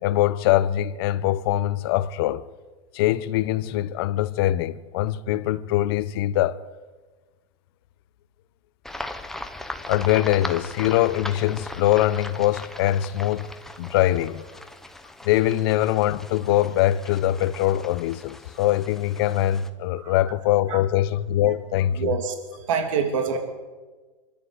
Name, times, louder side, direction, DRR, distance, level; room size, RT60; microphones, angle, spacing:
voice 1, 0.0-2.4 2.9-6.6 9.9-13.5 13.8-14.4 15.2-22.2, left 13 dB, 45° left, 0.9 m, -23 dB
sound 1, 8.8-19.7, left 2 dB, ahead, 0.8 m, -39 dB
voice 2, 22.0-23.4, right 6 dB, 70° right, 3.0 m, -26 dB
25.0 x 14.0 x 8.1 m
supercardioid pair, 160°, 17 cm